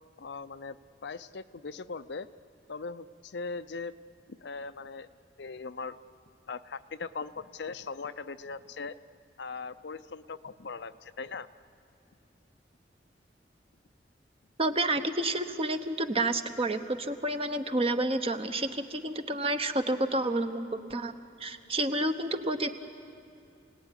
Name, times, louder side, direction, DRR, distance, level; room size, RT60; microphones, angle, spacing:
voice 1, 0.2-0.8 1.0-2.3 2.7-3.9 4.3-5.1 5.4-6.0 6.5-8.9 9.4-11.5, left 4 dB, 65° left, 12 dB, 0.6 m, -39 dB
voice 2, 14.6-21.1 21.4-22.7, right 1 dB, 35° right, 8 dB, 1.1 m, -29 dB
28.0 x 18.5 x 9.9 m, 2.5 s
head